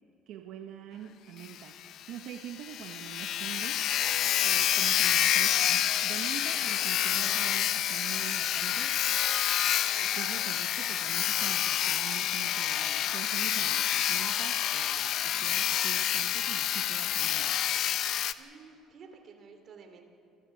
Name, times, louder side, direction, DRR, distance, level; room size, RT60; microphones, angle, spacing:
voice 1, 0.3-3.9 4.4-9.0 9.9-17.5, right 9 dB, 70° right, 5 dB, 1.1 m, -44 dB
Sawing, 1.4-1.5 1.9-2.0 2.3-2.4 2.6-18.3, left 11 dB, 55° left, 0.7 m, -28 dB
voice 2, 18.4-20.0, right 5 dB, 45° right, 5 dB, 2.8 m, -51 dB
27.5 x 13.5 x 8.4 m, 3.0 s
cardioid pair, 135°, 0 cm